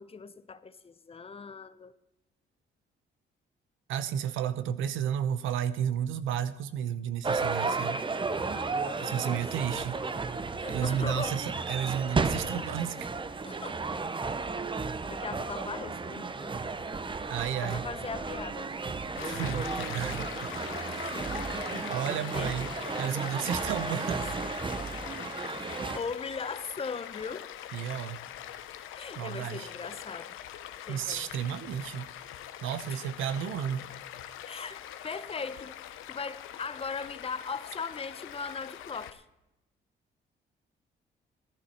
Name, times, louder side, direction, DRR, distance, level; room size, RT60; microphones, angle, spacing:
voice 1, 0.0-1.9 8.5-9.4 10.6-11.4 13.4-13.8 15.1-16.7 17.6-18.7 21.0-22.6 24.8-24.9 25.8-27.4 28.9-30.4 30.9-31.3 32.9-33.0 34.5-39.2, left 5 dB, 30° left, 15 dB, 0.7 m, -39 dB
voice 2, 3.9-8.0 9.0-10.0 10.7-13.0 17.3-17.8 19.2-20.5 21.7-22.7 23.0-24.4 27.7-28.2 29.2-29.7 30.9-32.1 32.6-33.9, right 9 dB, 85° right, 13 dB, 0.7 m, -32 dB
sound 1, 7.2-26.0, right 4 dB, 25° right, 0.7 m, -33 dB
Stream, 19.2-39.1, left 11 dB, 90° left, 0.8 m, -42 dB
13.5 x 11.5 x 4.3 m, 0.94 s
cardioid pair, 90°, 20 cm